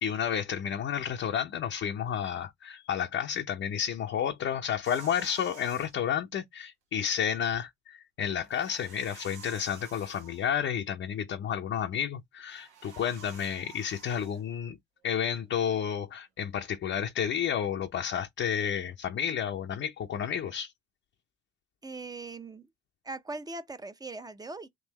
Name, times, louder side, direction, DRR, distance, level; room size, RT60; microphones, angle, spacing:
voice 1, 0.0-14.8 15.0-20.7, left 8 dB, 40° left, 0.6 m, -31 dB
sound 1, 4.8-5.9 8.4-10.5 12.4-14.4, right 6 dB, 85° right, 1.0 m, -51 dB
voice 2, 21.8-22.7 23.0-24.7, right 3 dB, 10° right, 0.6 m, -40 dB
3.7 x 2.5 x 3.0 m
hypercardioid pair, 65°, 32 cm